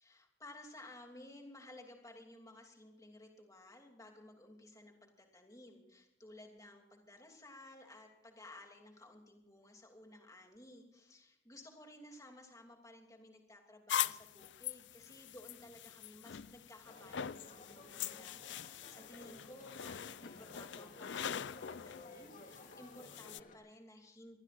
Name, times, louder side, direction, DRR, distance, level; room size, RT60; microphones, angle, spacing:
voice 1, 0.0-24.4, left 1 dB, 15° left, 2 dB, 2.8 m, -56 dB
sound 1, 13.9-23.4, left 9 dB, 60° left, 0.4 m, -43 dB
sound 2, 16.9-23.6, left 2 dB, 40° left, 2.5 m, -56 dB
26.0 x 18.0 x 2.5 m, 0.91 s
head